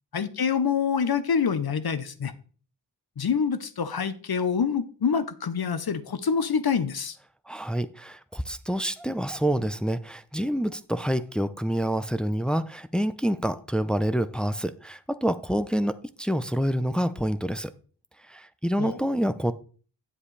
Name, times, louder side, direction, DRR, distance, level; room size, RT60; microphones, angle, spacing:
voice 1, 0.1-2.3 3.2-7.1 18.8-19.0, left 6 dB, 60° left, 12 dB, 0.9 m, -26 dB
voice 2, 7.5-17.7 18.3-19.5, equal, ahead, 11 dB, 0.5 m, -27 dB
8.6 x 7.3 x 3.3 m, 0.40 s
cardioid pair, 50°, 42 cm